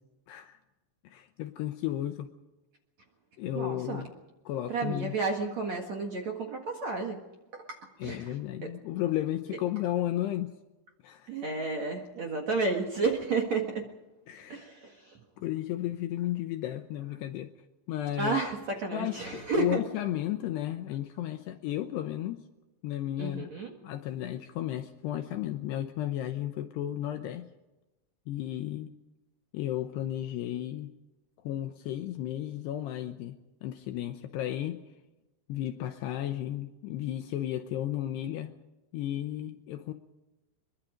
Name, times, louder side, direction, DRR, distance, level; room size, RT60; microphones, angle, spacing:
voice 1, 0.3-0.6 1.0-2.3 3.4-4.1 4.5-5.1 8.0-10.5 11.0-11.3 14.3-14.7 15.4-17.5 17.9-18.4 18.9-22.4 22.8-23.5 23.8-27.5 28.3-28.9 29.5-30.9 31.4-33.4 33.6-34.8 35.5-38.6 38.9-39.9, left 13 dB, 75° left, 7 dB, 2.6 m, -33 dB
voice 2, 3.5-4.1 4.7-7.2 7.5-8.4 8.6-8.7 11.3-13.9 14.5-15.2 18.2-19.8 23.2-23.7, right 4 dB, 55° right, 2 dB, 2.1 m, -32 dB
23.0 x 23.0 x 5.1 m, 1.0 s
omnidirectional pair, 5.6 m